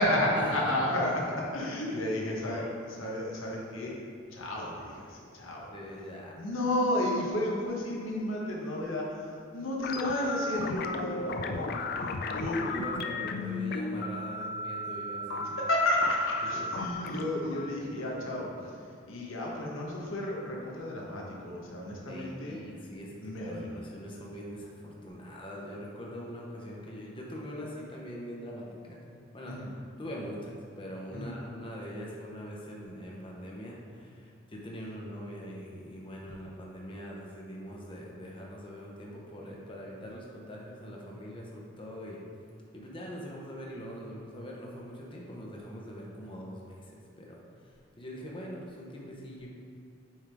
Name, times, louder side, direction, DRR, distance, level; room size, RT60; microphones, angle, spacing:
voice 1, 0.0-4.0 4.3-5.7 6.3-11.7 12.3-12.7 15.5-22.6 23.2-23.8 29.5-29.7 31.1-31.3, left 1 dB, 90° left, -3 dB, 1.3 m, -32 dB
voice 2, 5.7-6.3 11.2-15.6 16.5-16.6 22.1-29.0 29.3-29.6 30.0-42.2 42.7-49.5, equal, 25° left, -3 dB, 0.8 m, -42 dB
sound 1, 9.8-18.7, left 2 dB, 50° left, 0.4 m, -35 dB
7.3 x 3.6 x 4.7 m, 2.3 s
head